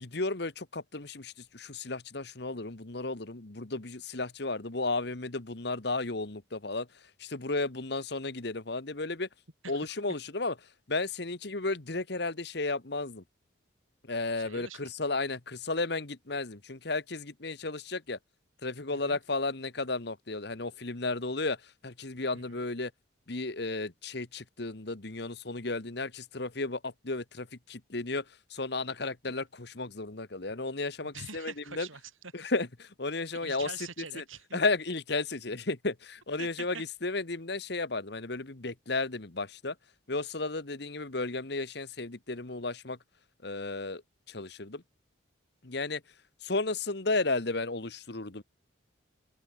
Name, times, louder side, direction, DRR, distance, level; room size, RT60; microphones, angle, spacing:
voice 1, 0.0-6.8 7.3-9.3 9.7-10.5 10.9-13.2 14.1-18.2 18.6-21.6 21.8-22.9 23.3-26.8 27.0-27.4 27.7-28.2 28.5-31.5 31.8-31.9 32.5-32.7 33.0-33.7 34.5-36.7 37.0-39.7 40.1-43.0 43.4-44.0 44.3-44.8 45.7-46.0 46.5-48.4, left 3 dB, 55° left, 1.4 m, -33 dB
voice 2, 9.6-10.0 14.3-14.9 18.9-19.2 22.3-22.6 31.0-32.3 33.4-34.6 36.4-36.8, right 5 dB, 85° right, 6.3 m, -45 dB
open air
head